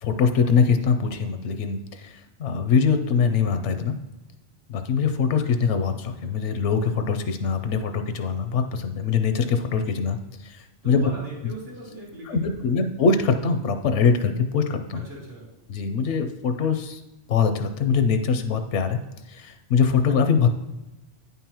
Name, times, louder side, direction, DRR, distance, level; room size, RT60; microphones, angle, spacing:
voice 1, 0.0-3.9 4.7-10.2 10.4-11.1 12.3-15.0 15.7-17.0 17.3-19.0 19.3-20.5, left 5 dB, 80° left, 8 dB, 0.9 m, -23 dB
voice 2, 10.8-12.8 14.9-15.5, right 1 dB, 85° right, -10 dB, 2.4 m, -40 dB
9.1 x 5.4 x 2.9 m, 1.0 s
omnidirectional pair, 1.2 m